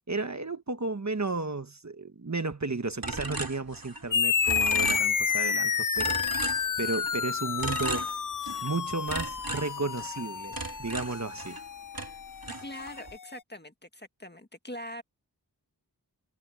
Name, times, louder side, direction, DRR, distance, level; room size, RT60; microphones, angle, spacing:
voice 1, 0.1-6.2 6.8-8.1 8.6-11.6, right 3 dB, 45° right, 1.2 m, -33 dB
sound 1, 3.0-4.2 4.5-5.6 6.0-7.1 7.6-8.7 9.1-11.7 11.9-13.1, right 2 dB, 60° right, 3.1 m, -36 dB
sound 2, 4.1-13.0, left 6 dB, 50° left, 0.6 m, -30 dB
voice 2, 12.6-15.0, left 1 dB, 25° left, 1.8 m, -42 dB
wide cardioid pair, 50°, 40 cm